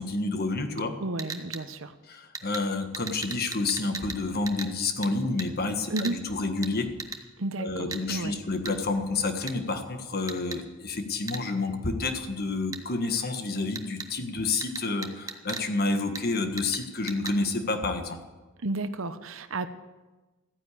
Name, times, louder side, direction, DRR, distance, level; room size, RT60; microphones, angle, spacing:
voice 1, 0.0-0.9 2.1-6.9 7.6-18.2, left 3 dB, 50° left, 7 dB, 1.5 m, -29 dB
voice 2, 1.0-1.9 5.9-6.2 7.4-8.3 18.6-19.7, right 2 dB, 70° right, 11 dB, 0.9 m, -32 dB
sound 1, 1.2-1.6 2.3-2.6 2.9-4.2 4.5-4.7 5.0-5.1 5.4-5.5 6.0-6.2 6.6-6.7 7.0-7.2 7.9-8.0 8.6-8.7 9.5-9.6 10.3-10.6 11.3-11.4 12.7-12.8 13.7-14.1 14.6-15.7 16.1-16.2 16.6-16.8 17.1-17.4, right 4 dB, 15° right, 1.1 m, -37 dB
14.5 x 10.0 x 8.5 m, 1.2 s
head